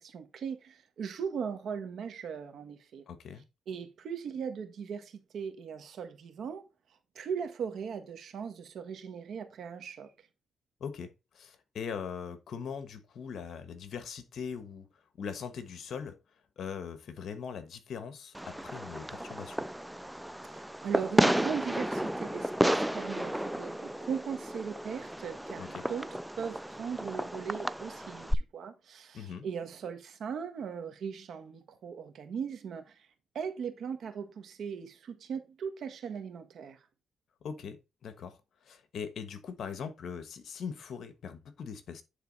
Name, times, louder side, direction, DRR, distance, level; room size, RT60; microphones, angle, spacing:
voice 1, 0.0-3.0 3.7-6.6 7.1-10.1 20.5-26.1 26.4-33.1 33.3-36.8, right 6 dB, 70° right, 1.5 m, -38 dB
voice 2, 3.1-3.4 10.8-14.9 15.2-16.2 16.6-19.6 25.6-25.9 29.1-29.5 37.4-38.4 38.6-42.0, left 6 dB, 65° left, 1.3 m, -41 dB
Fireworks, 18.3-28.3, equal, 5° right, 0.4 m, -32 dB
9.3 x 4.0 x 4.0 m
cardioid pair, 95°, 0 cm